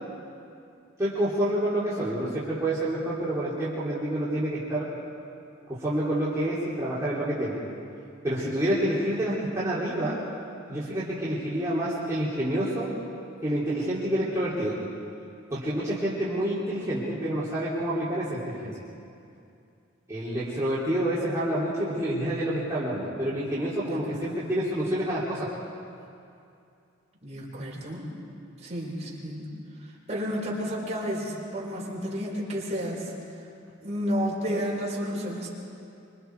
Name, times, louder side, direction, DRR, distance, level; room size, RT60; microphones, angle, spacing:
voice 1, 1.0-4.9 5.7-7.5 8.2-10.2 10.7-12.9 13.4-14.7 15.5-18.7 20.1-25.5, right 1 dB, 15° right, -10 dB, 3.4 m, -28 dB
voice 2, 23.9-24.4 27.2-28.1 28.6-29.5 30.1-33.1 33.8-35.5, equal, 35° right, -4 dB, 5.0 m, -31 dB
25.5 x 25.0 x 4.7 m, 2.6 s
head